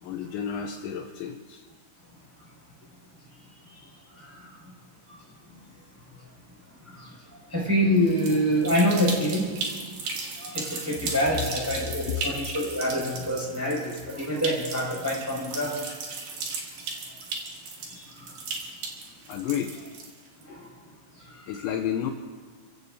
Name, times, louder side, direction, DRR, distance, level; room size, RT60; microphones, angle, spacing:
voice 1, 0.0-1.6 10.9-11.0 12.1-12.2 19.3-19.8 21.5-22.1, left 9 dB, 80° left, 3 dB, 2.9 m, -31 dB
voice 2, 7.5-9.5 10.4-15.7 17.9-18.0 20.5-20.6 21.6-21.7, equal, 5° right, -5 dB, 5.4 m, -26 dB
sound 1, 8.0-20.4, right 4 dB, 55° right, 3.0 m, -36 dB
30.0 x 16.0 x 2.8 m, 1.5 s
omnidirectional pair, 5.6 m